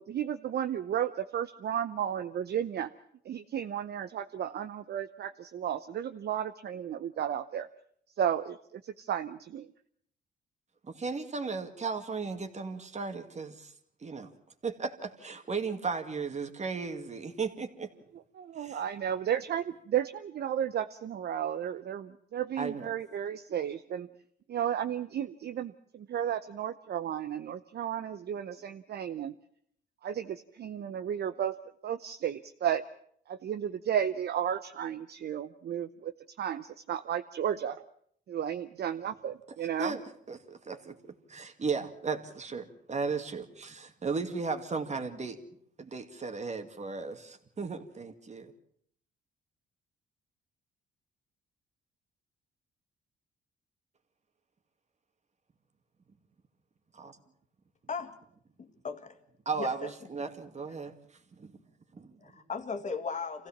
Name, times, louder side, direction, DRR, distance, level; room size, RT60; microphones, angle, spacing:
voice 1, 0.0-2.9 3.2-7.7 8.2-9.7 18.3-24.1 24.5-29.3 30.0-31.5 31.8-32.8 33.3-36.1 36.4-37.8 38.3-40.0, right 9 dB, 55° right, 9 dB, 0.8 m, -33 dB
voice 2, 10.8-13.7 14.0-14.3 14.6-17.9 18.6-18.8 22.6-22.9 39.8-40.0 40.3-41.0 41.3-45.4 45.8-48.5 56.9-57.2 59.5-60.9 61.4-61.5 61.9-62.2, right 4 dB, 35° right, 7 dB, 2.1 m, -35 dB
voice 3, 58.6-59.2 59.6-59.9 62.2-63.5, left 5 dB, 40° left, 7 dB, 2.2 m, -37 dB
25.5 x 16.0 x 7.3 m, 0.66 s
cardioid pair, 90°, 20 cm